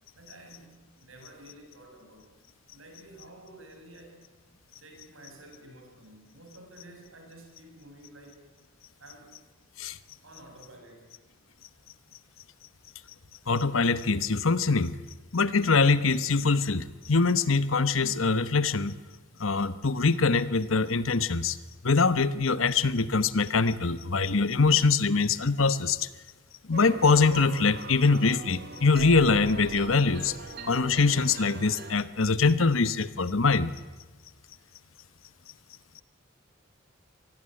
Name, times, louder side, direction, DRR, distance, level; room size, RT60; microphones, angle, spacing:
voice 1, 0.1-2.3 2.7-4.3 4.8-8.4 9.0-9.4 10.2-11.2, right 1 dB, 75° right, 3 dB, 7.6 m, -51 dB
voice 2, 13.5-14.9 15.3-19.0 19.4-21.6 21.8-26.1 26.7-30.4 30.7-33.7, left 4 dB, 75° left, 14 dB, 1.2 m, -23 dB
sound 1, 26.7-31.9, right 2 dB, 50° right, 2.4 m, -41 dB
26.0 x 19.5 x 9.9 m, 1.2 s
head